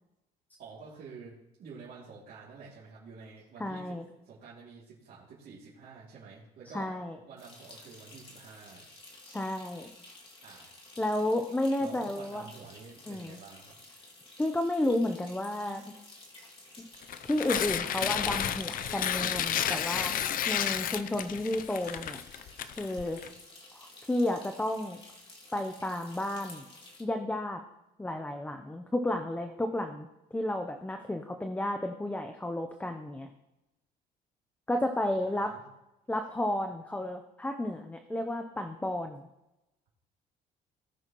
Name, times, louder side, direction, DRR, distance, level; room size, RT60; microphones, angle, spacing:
voice 1, 0.6-4.0 4.2-6.9 7.3-8.9 10.4-10.7 11.8-13.7 35.2-35.6, right 5 dB, 60° right, -7 dB, 2.8 m, -49 dB
voice 2, 3.6-4.1 6.7-7.2 9.2-9.9 11.0-12.5 13.1-13.4 14.4-15.9 16.8-16.9 17.2-20.1 20.5-22.2 22.8-23.2 23.7-25.0 25.5-26.7 27.0-27.6 28.0-33.3 34.7-35.5 36.1-39.3, left 1 dB, 10° left, 5 dB, 0.7 m, -32 dB
sound 1, 7.4-27.0, left 2 dB, 30° left, 2.5 m, -53 dB
Tearing, 17.0-23.3, left 9 dB, 55° left, 0.6 m, -32 dB
18.0 x 6.3 x 3.1 m, 0.95 s
cardioid pair, 110°, 17 cm